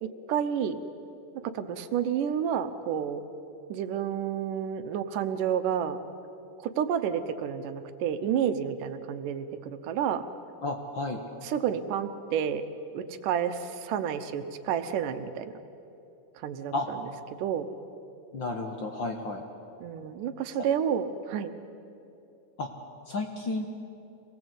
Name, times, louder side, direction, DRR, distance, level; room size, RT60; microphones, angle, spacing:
voice 1, 0.0-0.8 1.4-3.2 3.7-6.0 6.6-10.2 11.4-12.6 12.9-15.5 16.4-17.7 19.8-21.5, right 8 dB, 90° right, 10 dB, 2.6 m, -30 dB
voice 2, 10.6-11.2 16.7-16.9 18.3-19.4 22.6-22.7 23.1-23.7, left 2 dB, 55° left, 3 dB, 1.5 m, -32 dB
24.5 x 19.0 x 8.2 m, 2.8 s
omnidirectional pair, 3.6 m